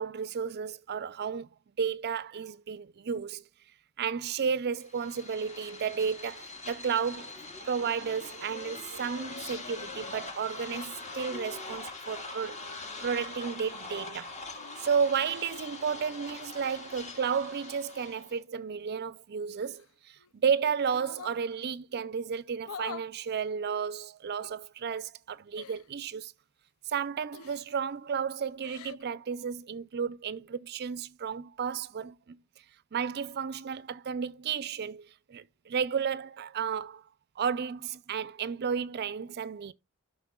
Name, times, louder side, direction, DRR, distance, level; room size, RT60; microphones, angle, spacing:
voice 1, 0.0-1.5 1.8-3.4 4.0-7.4 7.6-12.6 13.0-14.4 14.8-26.3 26.9-32.4 32.9-37.0 37.4-39.7, right 6 dB, 50° right, 0.4 m, -32 dB
sound 1, 4.8-18.4, left 3 dB, 35° left, 1.8 m, -43 dB
sound 2, 12.5-12.8 14.5-15.1 16.4-17.5 19.6-20.3 20.8-21.4 22.6-23.1 24.4-24.5 25.5-25.9 27.3-27.8 28.5-29.0, left 7 dB, 75° left, 0.5 m, -47 dB
13.0 x 6.1 x 2.3 m
head